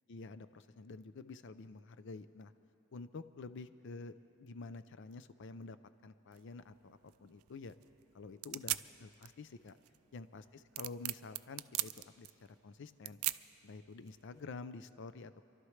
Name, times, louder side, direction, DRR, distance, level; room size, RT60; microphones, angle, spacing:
voice 1, 0.1-2.5 2.9-5.8 6.0-7.7 8.1-9.8 10.1-13.2 13.6-15.4, left 3 dB, 60° left, 13 dB, 0.5 m, -49 dB
sound 1, 6.3-14.4, right 18 dB, 85° right, 0.3 m, -43 dB
29.0 x 12.0 x 3.2 m, 2.7 s
head